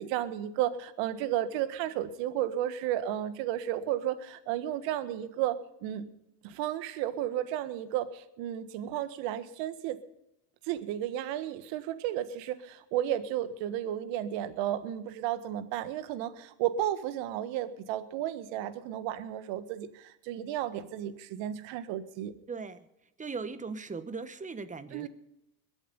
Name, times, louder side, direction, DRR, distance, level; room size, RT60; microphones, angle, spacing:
voice 1, 0.0-6.1 6.4-10.0 10.6-22.3 24.9-25.1, right 11 dB, 60° right, 12 dB, 1.6 m, -33 dB
voice 2, 22.5-22.9 23.2-25.1, right 4 dB, 15° right, 11 dB, 1.3 m, -38 dB
22.0 x 8.1 x 5.4 m, 0.84 s
hypercardioid pair, 90°, 49 cm